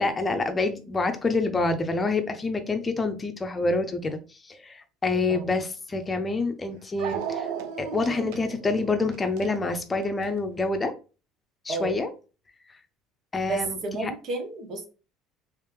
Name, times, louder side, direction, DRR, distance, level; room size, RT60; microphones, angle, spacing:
voice 1, 0.0-7.5 7.8-10.9 11.6-12.1 13.3-14.1, left 3 dB, 25° left, 7 dB, 0.6 m, -27 dB
Dog, 5.9-6.0 7.0-10.4, right 8 dB, 70° right, 0.5 m, -35 dB
voice 2, 13.4-14.9, right 3 dB, 55° right, 4 dB, 1.1 m, -31 dB
3.3 x 3.1 x 3.1 m, 0.34 s
hypercardioid pair, 70°, 0 cm